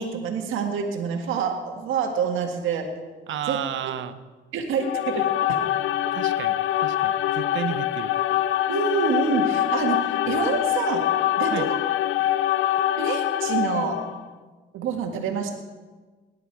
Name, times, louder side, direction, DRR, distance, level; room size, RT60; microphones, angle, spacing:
voice 1, 0.0-2.9 3.5-3.9 4.5-5.6 8.7-11.1 11.4-11.7 13.0-14.0 14.7-15.5, right 6 dB, 90° right, 3 dB, 1.9 m, -27 dB
voice 2, 3.3-4.2 6.1-8.1 11.5-11.7, right 9 dB, 75° right, 12 dB, 0.9 m, -32 dB
sound 1, 4.7-14.2, left 12 dB, 85° left, 0.5 m, -24 dB
19.0 x 11.0 x 4.7 m, 1.3 s
cardioid pair, 90°, 20 cm